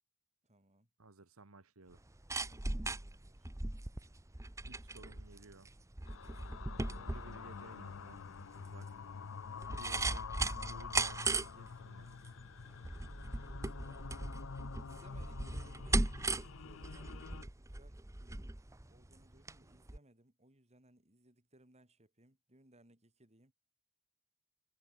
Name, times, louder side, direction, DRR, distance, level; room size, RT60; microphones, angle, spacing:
voice 1, 0.4-0.9 2.4-3.7 6.8-7.2 13.7-14.1 14.8-16.1 16.4-18.6 18.9-23.5, right 1 dB, 30° right, 5.5 m, -65 dB
voice 2, 1.0-2.0 4.6-5.7 6.9-8.2 8.6-8.9 9.8-10.3 10.7-12.1, right 2 dB, 80° right, 1.8 m, -56 dB
sound 1, 1.9-19.6 19.9-20.0, right 2 dB, 15° right, 0.8 m, -39 dB
sound 2, 6.1-17.4, left 6 dB, 65° left, 0.5 m, -48 dB
head